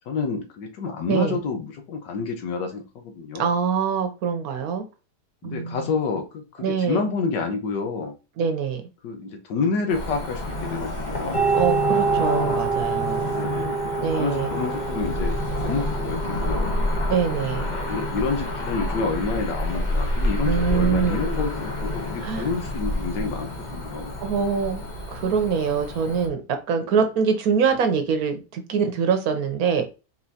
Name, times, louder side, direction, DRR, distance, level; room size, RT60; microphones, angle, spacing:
voice 1, 0.1-3.5 5.4-8.1 9.0-11.5 13.3-16.8 17.6-24.2 26.8-26.9, left 4 dB, 85° left, 5 dB, 1.6 m, -29 dB
voice 2, 3.4-4.8 5.4-5.9 6.6-7.0 8.4-8.9 11.5-13.3 14.0-14.5 17.1-17.7 20.4-21.3 22.2-22.5 24.2-24.8 25.1-29.9, right 6 dB, 65° right, 7 dB, 1.1 m, -24 dB
Cricket / Motor vehicle (road), 9.9-26.3, left 1 dB, 35° left, 0.8 m, -29 dB
sound 1, 11.3-26.1, right 4 dB, ahead, 0.7 m, -30 dB
4.3 x 4.2 x 2.7 m, 0.30 s
omnidirectional pair, 1.8 m